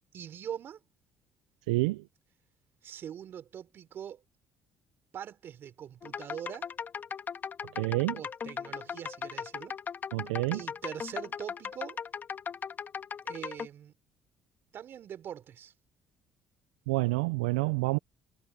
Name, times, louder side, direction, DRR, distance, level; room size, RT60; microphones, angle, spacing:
voice 1, 0.1-0.8 2.8-4.2 5.1-6.7 8.1-9.8 10.5-12.0 13.3-13.9 14.7-15.7, right 9 dB, 60° right, 3.4 m, -42 dB
voice 2, 1.7-2.0 7.7-8.2 10.1-10.6 16.9-18.0, right 23 dB, 90° right, 0.4 m, -28 dB
sound 1, 6.0-13.7, left 7 dB, 45° left, 1.4 m, -38 dB
hypercardioid pair, 60°, 4 cm